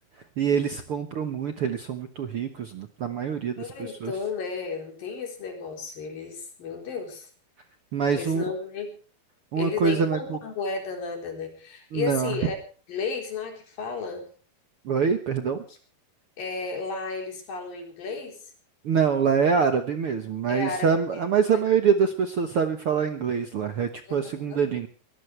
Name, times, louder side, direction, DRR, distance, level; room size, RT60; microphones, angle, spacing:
voice 1, 0.4-3.7 4.0-4.1 7.9-8.4 9.5-10.4 11.9-12.4 14.8-15.6 18.8-24.9, right 6 dB, 70° right, 7 dB, 1.3 m, -25 dB
voice 2, 3.6-7.3 8.1-8.9 9.6-12.6 12.9-14.3 16.4-18.4 20.5-21.2 21.5-21.6 24.1-24.6, left 4 dB, 65° left, 3 dB, 5.7 m, -33 dB
23.0 x 16.5 x 3.3 m, 0.39 s
omnidirectional pair, 4.4 m